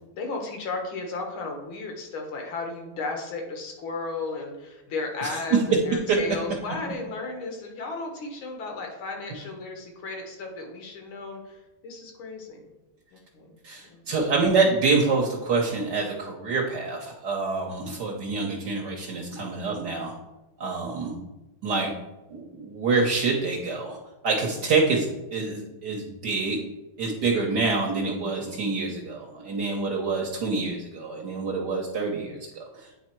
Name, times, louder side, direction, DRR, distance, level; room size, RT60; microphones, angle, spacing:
voice 1, 0.1-12.7 13.1-13.6 13.8-14.0, left 3 dB, 80° left, 2 dB, 2.1 m, -34 dB
voice 2, 13.6-20.1 20.6-21.1 21.6-21.9 22.3-24.0 24.2-25.0 25.3-26.6 27.0-32.7, right 4 dB, 60° right, 0 dB, 1.3 m, -26 dB
9.1 x 3.5 x 4.4 m, 1.0 s
omnidirectional pair, 2.2 m